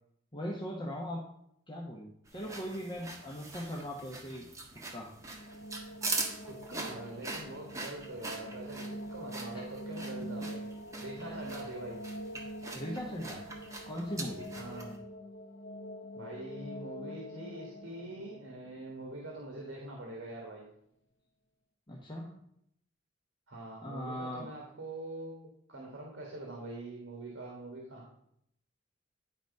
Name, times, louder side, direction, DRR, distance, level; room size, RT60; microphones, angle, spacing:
voice 1, 0.3-1.2 1.7-4.4 4.9-5.1 9.5-9.6 11.2-11.4 12.3-13.4 13.8-14.5 21.9-22.3 23.8-24.5, equal, 25° left, -3 dB, 1.1 m, -39 dB
sound 1, 2.3-15.0, right 3 dB, 15° right, 1.4 m, -42 dB
sound 2, 5.1-19.9, equal, 65° left, 0.8 m, -45 dB
voice 2, 6.5-10.6 11.0-12.0 14.5-15.0 16.1-20.6 23.5-25.4 25.7-28.0, right 2 dB, 70° right, -1 dB, 1.7 m, -44 dB
10.5 x 4.1 x 5.4 m, 0.73 s
head